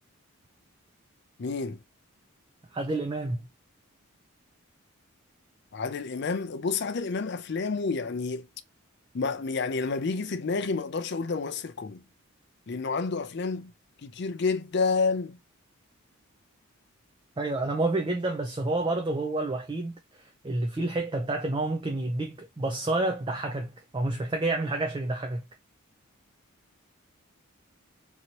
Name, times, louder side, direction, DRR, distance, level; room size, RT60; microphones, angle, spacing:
voice 1, 1.4-1.8 5.7-8.5 9.1-12.0 12.7-13.7 14.0-15.4, left 4 dB, 50° left, 0.4 m, -29 dB
voice 2, 2.7-3.5 17.4-25.5, right 2 dB, 20° right, 0.4 m, -29 dB
3.0 x 2.8 x 2.7 m
head